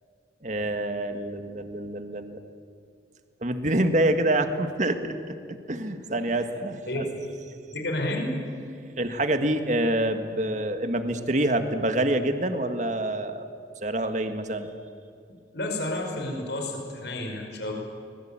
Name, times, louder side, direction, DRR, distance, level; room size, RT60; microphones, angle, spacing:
voice 1, 0.4-2.4 3.4-7.1 9.0-13.5 13.8-14.7, right 1 dB, 45° right, 8 dB, 1.7 m, -26 dB
voice 2, 7.7-8.3 15.5-17.7, left 1 dB, 75° left, 2 dB, 5.3 m, -30 dB
24.5 x 21.0 x 8.9 m, 2.5 s
head